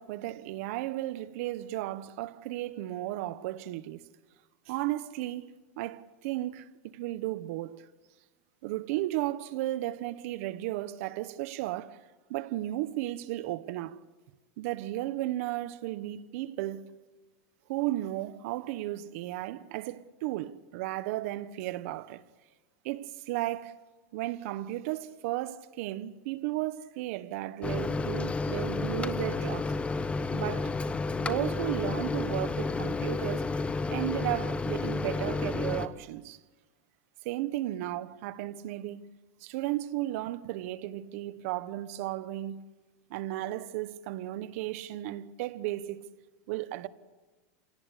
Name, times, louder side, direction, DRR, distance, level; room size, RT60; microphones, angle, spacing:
voice 1, 0.0-4.0 4.7-7.9 8.6-12.0 12.3-14.0 14.6-16.9 17.7-22.2 22.8-23.8 24.1-29.7 30.3-30.7 31.2-33.5 33.9-36.4 37.2-39.1 39.4-42.6 43.1-46.1 46.5-46.9, right 15 dB, 65° right, 1.1 m, -34 dB
Microwave oven, 27.6-35.9, left 3 dB, 15° left, 1.0 m, -31 dB
28.5 x 18.0 x 8.3 m
supercardioid pair, 130°, 8 cm